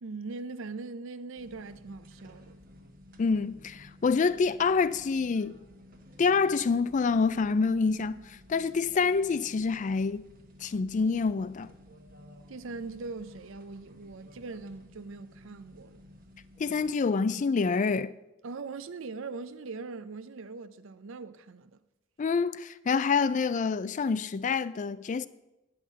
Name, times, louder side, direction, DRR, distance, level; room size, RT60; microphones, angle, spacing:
voice 1, 0.0-2.6 12.5-16.0 18.4-21.8, right 3 dB, 65° right, 0.6 m, -41 dB
sound 1, 1.4-16.9, left 1 dB, 45° right, 1.3 m, -54 dB
voice 2, 3.2-5.6 6.2-10.2 10.6-11.7 16.6-18.1 22.2-25.3, left 4 dB, 35° left, 0.3 m, -27 dB
10.0 x 5.8 x 7.3 m
head